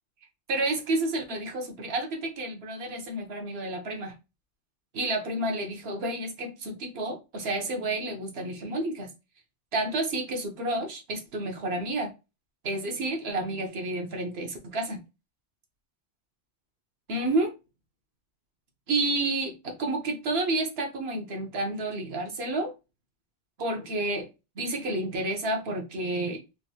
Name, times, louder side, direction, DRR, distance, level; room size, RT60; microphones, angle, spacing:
voice 1, 0.5-4.1 4.9-9.1 9.7-12.1 12.6-15.0 17.1-17.5 18.9-22.7 23.6-24.3 24.6-26.4, right 2 dB, 60° right, 1.1 m, -30 dB
3.6 x 2.6 x 2.7 m
omnidirectional pair, 1.2 m